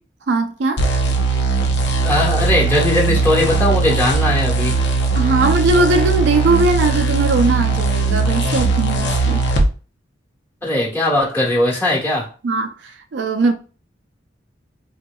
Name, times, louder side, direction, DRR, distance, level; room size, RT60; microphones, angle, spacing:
voice 1, 0.3-0.8 5.2-9.4 12.4-13.5, right 3 dB, 65° right, 0.4 m, -19 dB
sound 1, 0.8-9.7, right 3 dB, 65° left, 0.7 m, -18 dB
voice 2, 2.0-4.8 10.6-12.3, left 1 dB, 10° left, 1.2 m, -19 dB
4.0 x 2.9 x 2.2 m
head